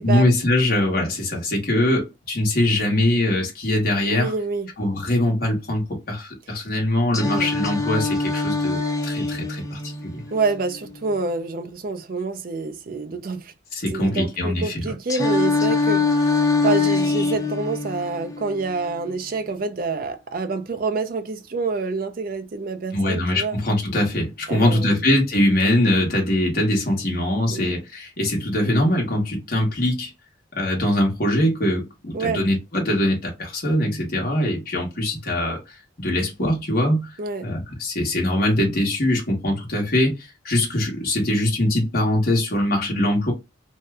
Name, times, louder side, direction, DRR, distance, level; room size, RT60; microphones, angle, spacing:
voice 1, 0.0-4.3 4.8-10.2 13.7-14.9 22.9-30.1 30.6-35.6 36.0-37.2 37.4-43.3, left 1 dB, 50° left, 1.1 m, -22 dB
voice 2, 4.1-4.7 7.2-7.5 10.3-13.5 13.9-23.6 24.5-25.0 27.5-27.8 32.1-32.4 37.2-37.5, right 3 dB, 45° right, 0.4 m, -27 dB
Singing, 7.1-11.1 15.1-19.1, left 3 dB, 15° left, 0.3 m, -24 dB
2.7 x 2.2 x 3.4 m
head